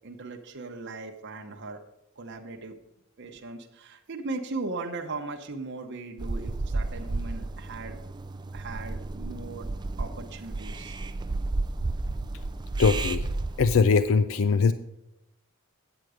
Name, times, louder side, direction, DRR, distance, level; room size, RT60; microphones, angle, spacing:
voice 1, 0.0-1.8 2.2-2.7 3.2-8.0 8.5-9.7 10.0-11.0, right 3 dB, 55° right, 3 dB, 0.9 m, -38 dB
sound 1, 6.2-13.8, right 2 dB, 20° right, 0.3 m, -32 dB
voice 2, 12.8-13.3 13.6-14.7, left 5 dB, 65° left, 13 dB, 0.4 m, -21 dB
9.1 x 7.9 x 4.9 m, 0.86 s
head